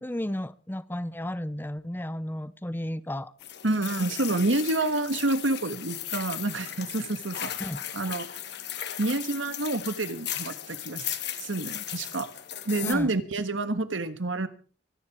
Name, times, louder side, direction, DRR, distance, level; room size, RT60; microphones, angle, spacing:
voice 1, 0.0-3.3 7.6-7.8 12.8-13.2, left 1 dB, 10° left, 16 dB, 0.6 m, -33 dB
sound 1, 3.4-12.9, left 11 dB, 60° left, 1.8 m, -37 dB
voice 2, 3.6-7.5 7.9-8.3 9.0-12.3 12.7-14.5, right 2 dB, 85° right, 12 dB, 1.5 m, -28 dB
24.0 x 10.0 x 4.8 m, 0.40 s
head